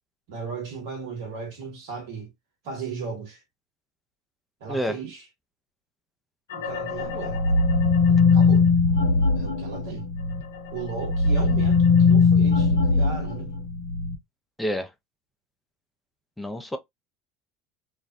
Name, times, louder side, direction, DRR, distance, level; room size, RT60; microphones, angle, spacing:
voice 1, 0.3-2.3 2.6-3.4 4.6-5.2 6.5-7.5 8.1-8.7 9.3-10.1 10.7-13.5, right 5 dB, 65° right, 1.2 m, -36 dB
voice 2, 4.7-5.0 14.6-14.9 16.4-16.8, equal, 5° left, 0.5 m, -28 dB
sound 1, 6.5-10.4 10.8-14.2, left 4 dB, 75° left, 0.4 m, -20 dB
2.4 x 2.0 x 2.5 m
figure-of-eight pair, 70°, 0 cm